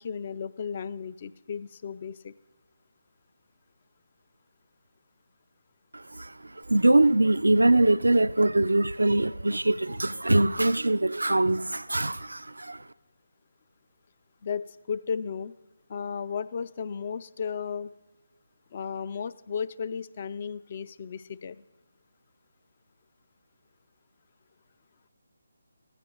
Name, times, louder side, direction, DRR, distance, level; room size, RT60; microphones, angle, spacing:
voice 1, 0.0-2.3 14.4-15.5 15.9-18.0 18.7-21.6, left 6 dB, 40° left, 0.5 m, -34 dB
voice 2, 5.9-12.8, right 2 dB, 85° right, 0.4 m, -23 dB
15.0 x 14.5 x 3.8 m
figure-of-eight pair, 155°, 0 cm